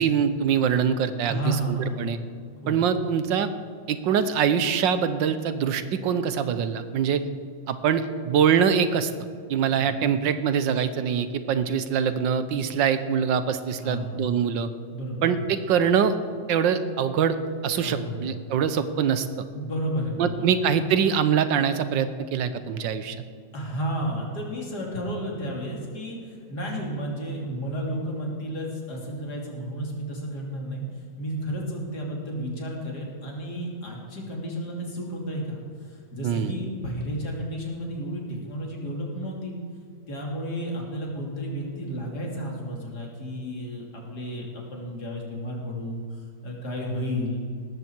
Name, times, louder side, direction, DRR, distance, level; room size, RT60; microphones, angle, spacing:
voice 1, 0.0-2.2 2.7-3.5 3.9-7.2 7.7-9.1 9.5-14.7 15.2-16.2 16.5-17.4 17.6-19.5 20.2-23.2 36.2-36.5, right 7 dB, 85° right, 11 dB, 1.6 m, -24 dB
voice 2, 1.3-2.0 2.6-2.8 9.7-10.1 13.8-14.2 14.9-15.3 17.8-18.3 19.5-20.5 23.5-39.6 40.1-47.4, equal, 60° left, -1 dB, 3.4 m, -32 dB
18.0 x 14.0 x 4.6 m, 2.1 s
omnidirectional pair, 1.9 m